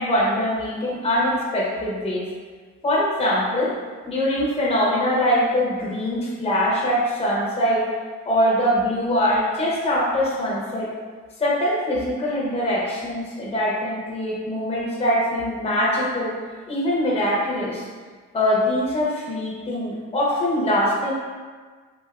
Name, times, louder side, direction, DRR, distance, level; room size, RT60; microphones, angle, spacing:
voice 1, 0.0-2.3 2.8-3.7 4.1-7.8 8.3-10.9 11.4-16.3 16.7-17.8 18.3-21.1, equal, 20° left, -6 dB, 0.7 m, -23 dB
3.5 x 2.5 x 2.3 m, 1.5 s
cardioid pair, 90°, 30 cm